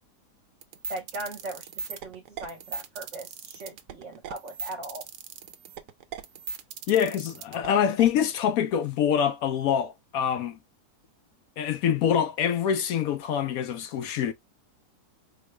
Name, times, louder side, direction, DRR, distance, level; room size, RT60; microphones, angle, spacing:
sound 1, 0.6-8.1, right 6 dB, 85° right, 1.2 m, -38 dB
voice 1, 0.9-5.0, right 2 dB, 50° right, 1.3 m, -39 dB
voice 2, 6.9-10.6 11.6-14.3, left 9 dB, 70° left, 1.0 m, -25 dB
4.5 x 2.3 x 3.2 m
omnidirectional pair, 1.7 m